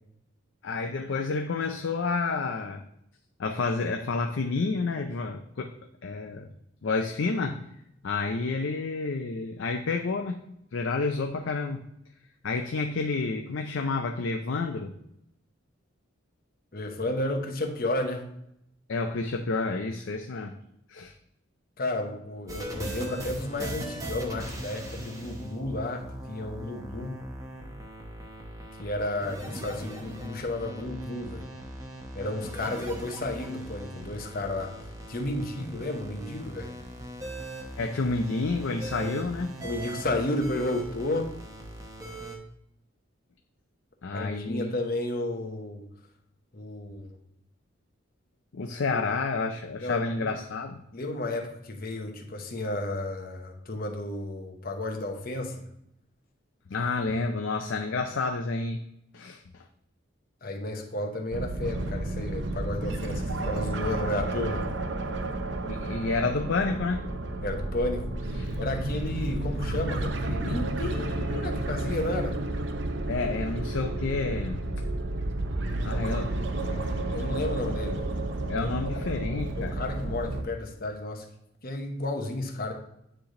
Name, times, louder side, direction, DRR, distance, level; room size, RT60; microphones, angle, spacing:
voice 1, 0.6-2.8 3.4-5.7 6.0-6.5 6.8-7.6 8.0-10.4 10.7-11.8 12.4-14.9 18.9-20.6 20.9-21.1 37.8-39.5 44.0-44.7 48.5-50.8 56.7-58.9 59.1-59.7 65.7-67.1 68.4-68.6 73.1-74.7 75.8-77.2 78.5-79.8, left 3 dB, 70° left, 4 dB, 0.5 m, -30 dB
voice 2, 16.7-18.3 21.8-27.2 28.8-31.5 32.1-34.7 35.1-36.7 39.0-39.1 39.6-41.3 44.1-45.9 46.5-47.2 49.7-50.3 50.9-55.7 60.4-64.7 67.4-72.4 77.1-78.1 78.6-79.1 79.6-81.3 81.6-82.7, left 1 dB, 50° left, 3 dB, 0.9 m, -32 dB
sound 1, 22.5-42.4, right 1 dB, 15° right, 0.8 m, -40 dB
sound 2, 61.3-80.4, right 2 dB, 65° right, 0.6 m, -31 dB
9.6 x 3.3 x 3.7 m, 0.77 s
head